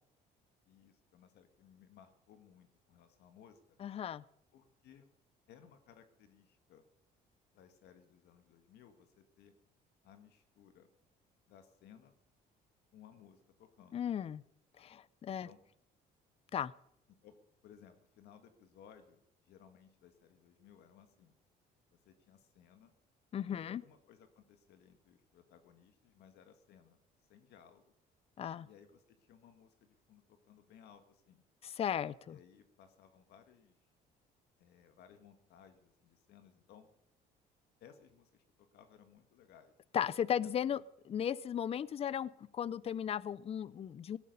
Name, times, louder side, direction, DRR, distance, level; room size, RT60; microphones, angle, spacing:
voice 1, 0.7-3.6 4.5-5.1 5.5-6.8 7.5-9.5 10.0-10.9 11.5-12.2 12.9-14.0 15.3-15.6 17.2-17.3 17.6-21.3 21.9-22.9 23.5-27.0 27.3-27.8 28.6-31.4 32.3-33.8 34.6-36.9 37.8-39.7 40.4-40.9, left 8 dB, 75° left, 8 dB, 1.8 m, -61 dB
voice 2, 3.8-4.2 13.9-14.4 14.8-15.5 16.5-16.7 23.3-23.8 28.4-28.7 31.6-32.4 39.9-44.2, left 9 dB, 35° left, 21 dB, 0.5 m, -36 dB
18.0 x 12.5 x 5.4 m, 0.73 s
cardioid pair, 110°, 17 cm